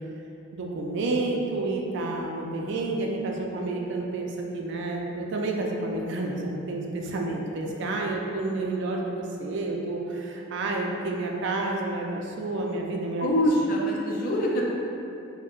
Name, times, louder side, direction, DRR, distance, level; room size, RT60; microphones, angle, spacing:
voice 1, 0.5-13.3, right 2 dB, 60° right, 0 dB, 0.4 m, -30 dB
voice 2, 13.2-14.7, equal, 45° left, -2 dB, 0.4 m, -24 dB
4.4 x 2.1 x 2.4 m, 2.8 s
head